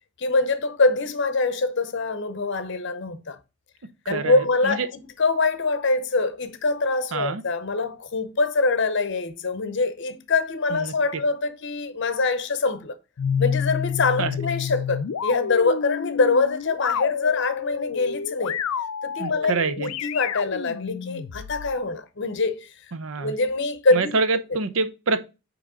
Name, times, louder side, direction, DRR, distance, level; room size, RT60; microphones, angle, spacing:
voice 1, 0.2-3.4 4.1-13.0 13.4-18.6 19.0-22.8 23.2-24.2, left 3 dB, 55° left, 0.7 m, -24 dB
voice 2, 4.1-4.9 7.1-7.4 10.7-10.9 14.2-14.4 19.2-19.9 22.9-23.3 23.9-25.2, right 4 dB, 65° right, 0.7 m, -26 dB
sound 1, 13.2-21.8, left 7 dB, 85° left, 0.5 m, -29 dB
8.5 x 3.1 x 3.7 m
head